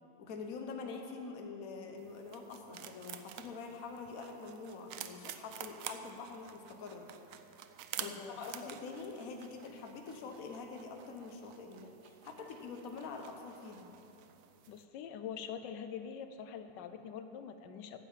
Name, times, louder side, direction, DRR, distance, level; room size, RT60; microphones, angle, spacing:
voice 1, 0.2-7.1 8.0-13.9, left 4 dB, 55° left, 3 dB, 1.3 m, -45 dB
sound 1, 2.0-14.8, right 10 dB, 75° right, 0.7 m, -50 dB
voice 2, 8.0-8.5 14.7-18.0, left 7 dB, 80° left, 8 dB, 1.3 m, -44 dB
9.2 x 7.6 x 7.3 m, 3.0 s
omnidirectional pair, 1.9 m